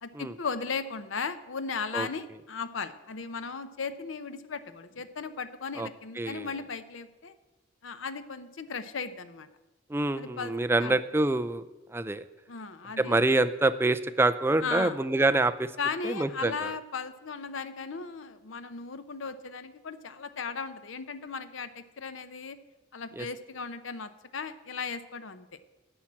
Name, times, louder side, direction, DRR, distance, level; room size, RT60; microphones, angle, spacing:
voice 1, 0.0-7.3 7.8-9.5 10.2-10.5 10.8-11.0 12.5-13.2 14.6-15.0 15.8-22.6 22.9-25.5, left 5 dB, 75° left, 12 dB, 0.7 m, -36 dB
voice 2, 6.2-6.5 9.9-11.6 11.9-12.2 13.0-15.7 16.0-16.7 23.2-23.3, right 2 dB, 10° right, 10 dB, 0.3 m, -26 dB
10.0 x 5.9 x 8.6 m, 1.1 s
head